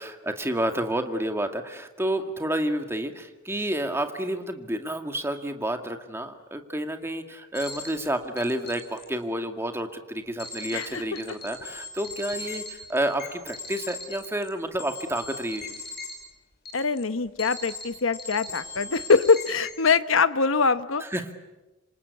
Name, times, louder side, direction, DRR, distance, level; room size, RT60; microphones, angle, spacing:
voice 1, 0.0-15.7 21.1-21.3, right 1 dB, 15° right, 6 dB, 2.1 m, -30 dB
sound 1, 7.5-8.1 8.4-9.0 10.4-10.9 11.2-16.1 16.7-17.0 17.4-17.8 18.1-19.7, left 3 dB, 55° left, 5.6 m, -38 dB
voice 2, 10.7-11.0 16.7-21.0, left 4 dB, 80° left, 13 dB, 1.1 m, -23 dB
27.0 x 26.0 x 8.4 m, 1.1 s
head